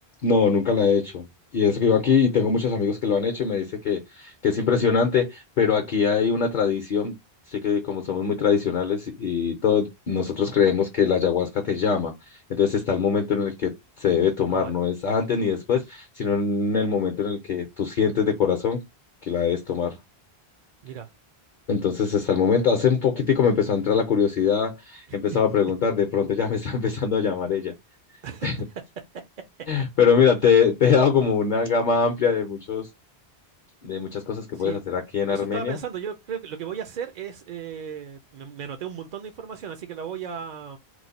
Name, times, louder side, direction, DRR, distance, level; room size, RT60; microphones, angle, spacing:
voice 1, 0.2-1.3 1.5-7.2 7.5-18.8 19.2-20.0 21.7-27.7 28.4-28.6 29.7-32.9 33.8-35.8, left 6 dB, 50° left, 0.7 m, -23 dB
voice 2, 35.3-40.8, right 7 dB, 55° right, 0.5 m, -35 dB
3.1 x 2.1 x 4.0 m
omnidirectional pair, 1.1 m